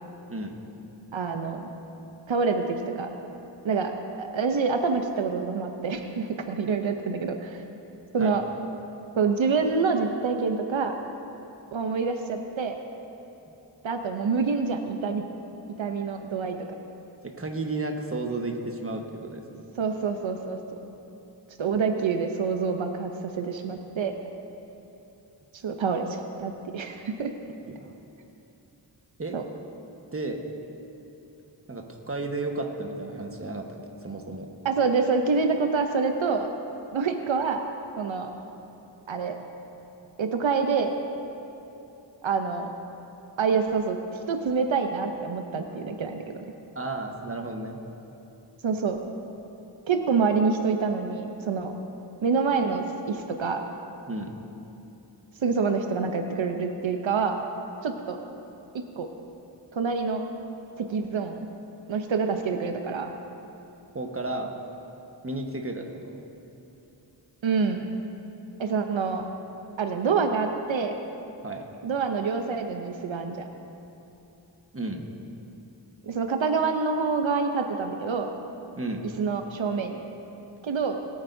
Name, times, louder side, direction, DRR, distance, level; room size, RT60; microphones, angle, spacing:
voice 1, 1.1-1.7 2.3-3.1 3.6-3.9 4.2-7.6 8.1-8.4 9.2-11.0 11.7-12.8 13.8-15.2 15.8-16.6 19.8-20.6 21.6-24.1 25.6-27.3 29.3-29.4 34.6-36.5 36.9-37.6 38.0-38.3 39.1-39.4 40.2-40.9 42.2-42.7 43.4-46.4 48.6-49.0 49.9-51.7 52.2-53.6 55.4-57.4 57.8-58.2 59.0-59.1 59.7-60.2 60.8-61.5 61.9-63.1 67.4-67.9 68.6-69.3 69.8-71.0 71.8-73.5 76.0-78.3 79.2-80.0 80.6-81.0, right 5 dB, 85° right, 5 dB, 0.8 m, -26 dB
voice 2, 17.4-19.4 27.7-27.9 29.2-29.4 30.1-30.5 31.7-34.5 46.7-47.8 54.1-54.4 63.9-64.5 65.2-66.2 71.4-71.7 74.7-75.0 78.8-79.0, right 2 dB, 30° right, 3 dB, 1.3 m, -33 dB
21.0 x 8.9 x 2.7 m, 2.9 s
cardioid pair, 45°, 45 cm